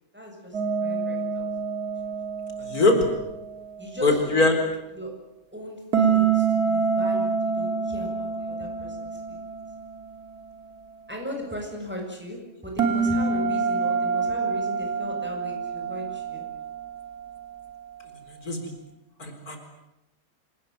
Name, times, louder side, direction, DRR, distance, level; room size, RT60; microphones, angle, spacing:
voice 1, 0.1-1.5 2.0-2.1 2.6-2.7 3.8-4.5 4.9-5.1 5.5-9.4 11.1-16.4, equal, 5° right, 0 dB, 7.8 m, -38 dB
sound 1, 0.5-3.6 5.9-10.4 12.8-17.3, right 5 dB, 90° right, 3.8 m, -27 dB
voice 2, 2.7-3.0 4.0-4.5 18.4-18.6 19.2-19.6, left 2 dB, 85° left, 5 dB, 4.8 m, -21 dB
27.0 x 19.5 x 9.4 m, 0.91 s
omnidirectional pair, 1.6 m